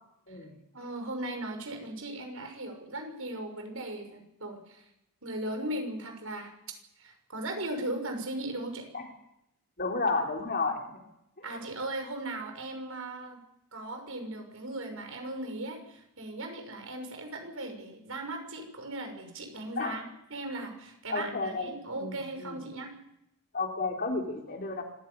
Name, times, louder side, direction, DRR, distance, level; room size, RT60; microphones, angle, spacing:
voice 1, 0.7-4.8 5.2-6.5 7.0-8.9 11.4-13.4 13.7-20.0 20.3-22.9, right 1 dB, 70° right, 5 dB, 6.1 m, -38 dB
voice 2, 9.8-10.8 11.4-11.6 19.8-20.0 21.1-22.6 23.5-24.8, left 3 dB, 45° left, 1 dB, 4.0 m, -32 dB
25.5 x 15.5 x 9.7 m, 0.83 s
head